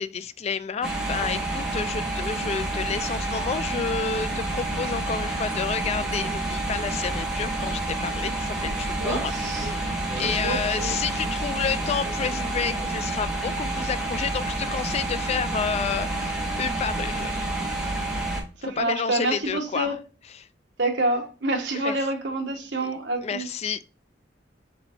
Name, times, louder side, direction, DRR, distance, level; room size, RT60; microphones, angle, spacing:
voice 1, 0.0-17.3 18.6-19.9 20.3-20.5 21.7-22.0 22.8-22.9 23.2-23.8, left 6 dB, 35° left, 0.3 m, -30 dB
sound 1, 0.8-18.4, right 2 dB, 5° right, 1.2 m, -29 dB
voice 2, 9.0-9.7 10.1-10.9 18.6-20.0 20.8-23.5, right 2 dB, 70° right, 1.3 m, -28 dB
4.3 x 4.2 x 2.6 m
head